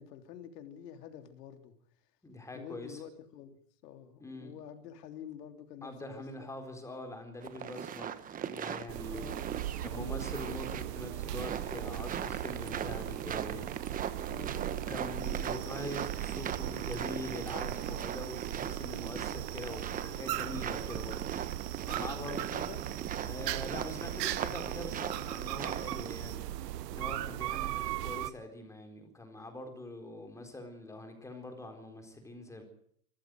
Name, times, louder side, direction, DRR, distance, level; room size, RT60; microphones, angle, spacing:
voice 1, 0.0-1.7 2.5-3.5 3.8-5.9 6.4-6.5 9.1-9.5 9.9-10.5 14.3-14.9 21.9-22.8, left 9 dB, 80° left, 3.5 m, -48 dB
voice 2, 2.2-3.0 4.2-4.5 5.8-8.1 8.4-9.3 9.8-14.6 14.9-21.2 21.8-22.5 22.8-32.6, left 2 dB, 5° left, 4.2 m, -44 dB
sound 1, 7.4-26.1, right 9 dB, 15° right, 1.1 m, -40 dB
sound 2, 8.9-28.3, right 14 dB, 85° right, 1.2 m, -38 dB
sound 3, 15.2-26.4, right 12 dB, 40° right, 2.8 m, -50 dB
25.0 x 15.0 x 7.8 m
supercardioid pair, 160°, 47 cm